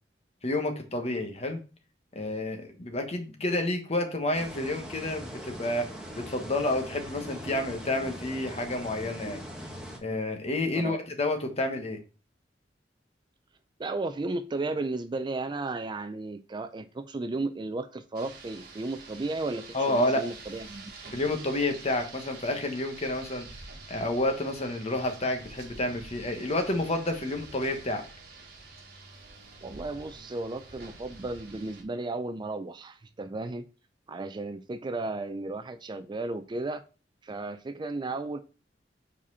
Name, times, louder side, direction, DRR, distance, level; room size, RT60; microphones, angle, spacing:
voice 1, 0.4-1.6 2.1-5.9 6.1-9.4 10.0-12.0 19.7-20.2 21.1-23.5 23.9-28.0, left 1 dB, 35° left, 5 dB, 1.2 m, -29 dB
sound 1, 4.3-10.0, equal, 5° right, 1.3 m, -41 dB
voice 2, 13.8-21.1 29.6-33.7 34.1-36.8 37.2-38.4, right 2 dB, 25° right, 11 dB, 0.4 m, -34 dB
Rain, 18.1-31.8, right 3 dB, 60° right, 1.6 m, -47 dB
5.0 x 4.3 x 5.4 m, 0.35 s
head